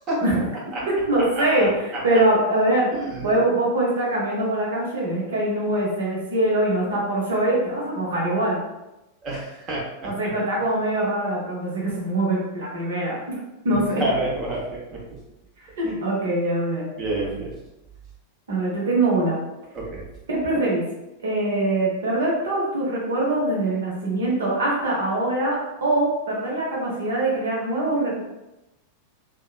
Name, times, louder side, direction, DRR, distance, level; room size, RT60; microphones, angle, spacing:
voice 1, 0.2-2.9 3.2-8.6 10.0-13.4 13.6-14.0 15.8-16.9 18.5-19.4 20.3-20.8 21.2-28.2, right 1 dB, 65° right, -3 dB, 0.8 m, -23 dB
voice 2, 1.4-1.7 2.9-3.4 9.2-10.1 13.7-14.6 14.9-15.0 15.8-15.9 17.0-17.5 19.7-20.0, right 2 dB, 30° right, -4 dB, 0.9 m, -28 dB
2.8 x 2.2 x 2.3 m, 0.97 s
figure-of-eight pair, 90°, 0 cm